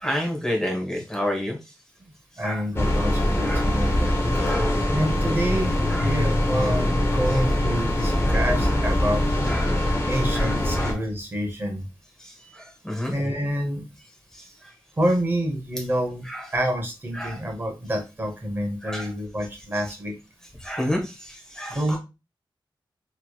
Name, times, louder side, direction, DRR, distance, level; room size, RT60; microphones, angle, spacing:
voice 1, 0.0-1.6 2.4-2.6 3.4-3.7 4.5-4.7 5.9-6.1 8.3-8.4 9.4-9.7 10.3-11.0 12.2-13.1 14.3-14.4 16.3-16.4 17.2-17.4 18.8-19.1 20.6-21.8, equal, 5° left, 0 dB, 0.9 m, -30 dB
voice 2, 2.4-4.1 4.9-9.2 10.1-11.9 13.1-13.8 15.0-16.3 16.5-20.1 21.7-22.0, equal, 25° right, 1 dB, 0.8 m, -27 dB
sound 1, 2.8-10.9, left 1 dB, 30° left, 0.5 m, -23 dB
3.0 x 2.9 x 2.3 m, 0.27 s
wide cardioid pair, 170°, 9 cm